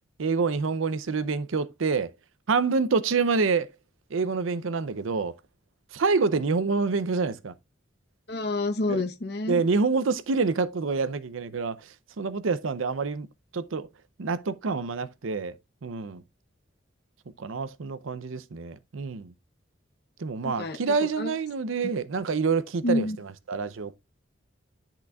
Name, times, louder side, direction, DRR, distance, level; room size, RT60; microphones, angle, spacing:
voice 1, 0.2-2.1 2.5-3.7 4.1-5.4 5.9-7.5 8.9-9.0 9.5-13.3 13.5-13.9 14.2-15.6 15.8-16.2 17.4-19.3 20.2-24.0, right 4 dB, 90° right, 0.6 m, -27 dB
voice 2, 8.3-9.6 20.6-20.8 21.2-21.3 22.8-23.2, left 2 dB, 55° left, 0.8 m, -28 dB
10.5 x 6.0 x 2.3 m
head